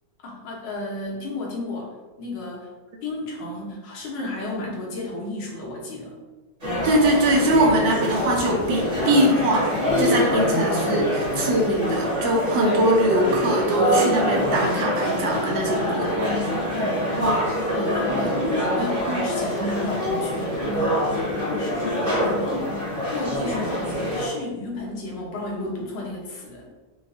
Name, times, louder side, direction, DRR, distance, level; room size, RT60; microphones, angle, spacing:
voice 1, 0.2-2.7 3.0-6.2 16.7-17.1 17.4-18.4 18.6-21.0 21.3-22.8 23.1-26.7, left 2 dB, 65° left, -3 dB, 1.5 m, -33 dB
sound 1, 6.6-24.3, equal, 20° right, 1.2 m, -25 dB
voice 2, 6.8-9.7 10.0-16.3 17.2-17.3 18.4-18.5 19.1-19.2, right 1 dB, 75° right, 0 dB, 1.3 m, -22 dB
4.7 x 2.2 x 2.6 m, 1.2 s
omnidirectional pair, 2.2 m